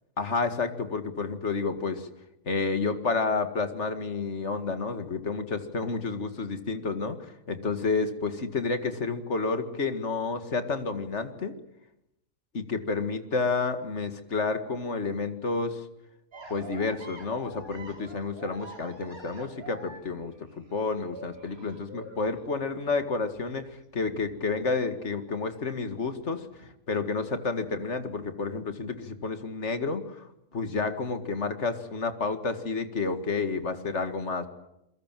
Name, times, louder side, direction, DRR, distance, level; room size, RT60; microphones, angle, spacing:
voice 1, 0.2-2.1 2.5-11.5 12.5-15.9 16.5-34.5, left 4 dB, 55° left, 8 dB, 2.2 m, -30 dB
sound 1, 16.3-25.2 25.5-26.7, right 1 dB, 80° right, 4.2 m, -47 dB
28.5 x 22.0 x 7.6 m, 0.85 s
omnidirectional pair, 1.5 m